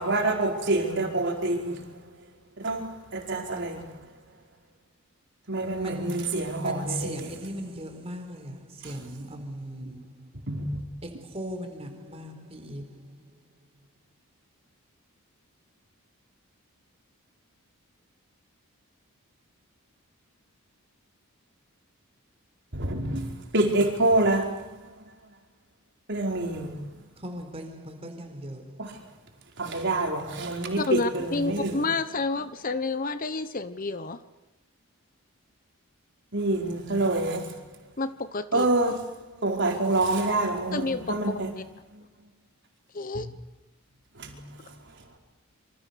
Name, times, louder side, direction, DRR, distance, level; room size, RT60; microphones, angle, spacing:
voice 1, 0.0-2.2 2.6-4.0 5.5-7.4 8.8-9.0 9.4-9.5 9.8-10.0 10.5-10.8 22.7-25.0 26.1-26.9 28.8-29.0 29.6-31.8 36.3-37.7 38.5-41.5 41.9-42.0 43.1-43.3 44.1-44.7, right 2 dB, 55° right, 4.9 m, -27 dB
voice 2, 5.7-10.4 11.0-13.2 27.2-28.8, right 1 dB, 25° right, 4.2 m, -38 dB
voice 3, 30.8-34.2 38.0-38.7 40.7-41.1 42.9-43.3, left 3 dB, 40° left, 1.1 m, -29 dB
27.0 x 25.5 x 6.9 m
head